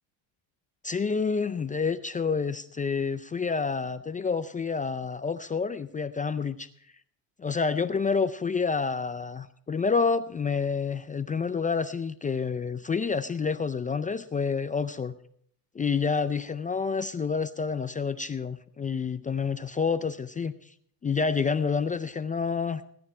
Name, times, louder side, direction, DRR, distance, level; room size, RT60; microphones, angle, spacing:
voice 1, 0.8-6.7 7.4-15.2 15.7-20.7 21.0-22.9, left 5 dB, 15° left, 11 dB, 0.4 m, -28 dB
19.0 x 9.7 x 4.4 m, 0.64 s
cardioid pair, 115°, 49 cm